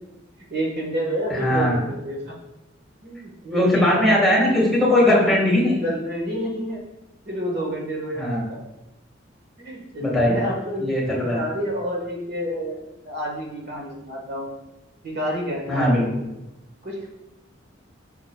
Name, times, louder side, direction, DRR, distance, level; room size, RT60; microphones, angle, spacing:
voice 1, 0.5-2.4 3.0-4.3 5.0-5.4 5.7-6.8 7.3-8.6 9.6-10.9 11.2-14.5 15.0-15.9 16.8-17.1, equal, 60° right, -1 dB, 1.5 m, -29 dB
voice 2, 1.3-1.8 3.5-5.7 8.2-8.4 10.0-10.4 10.8-11.4 15.7-16.2, left 1 dB, ahead, -4 dB, 1.8 m, -19 dB
7.9 x 5.9 x 2.3 m, 0.98 s
head